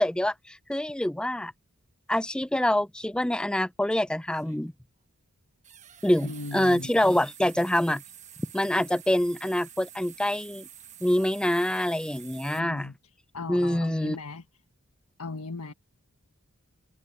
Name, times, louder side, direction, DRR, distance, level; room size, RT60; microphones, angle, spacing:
voice 1, 0.0-1.5 2.1-4.7 6.0-8.0 8.5-10.7 11.0-12.9 13.5-14.2, left 1 dB, 5° left, 0.3 m, -26 dB
sound 1, 3.1-3.2 4.3-4.7 5.6-12.6, right 10 dB, 30° right, 1.2 m, -48 dB
voice 2, 6.2-6.9 12.6-12.9 13.3-14.4 15.2-15.7, left 3 dB, 85° left, 1.5 m, -37 dB
head